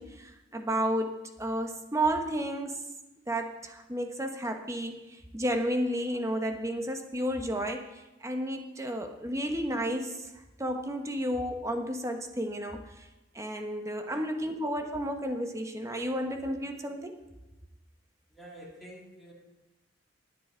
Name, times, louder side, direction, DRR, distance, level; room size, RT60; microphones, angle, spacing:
voice 1, 0.0-2.8 3.3-10.3 10.6-13.1 13.3-17.1, right 1 dB, 15° right, 5 dB, 1.1 m, -32 dB
voice 2, 14.1-14.5 18.3-19.3, right 1 dB, ahead, -5 dB, 3.5 m, -49 dB
19.0 x 8.5 x 4.5 m, 1.0 s
head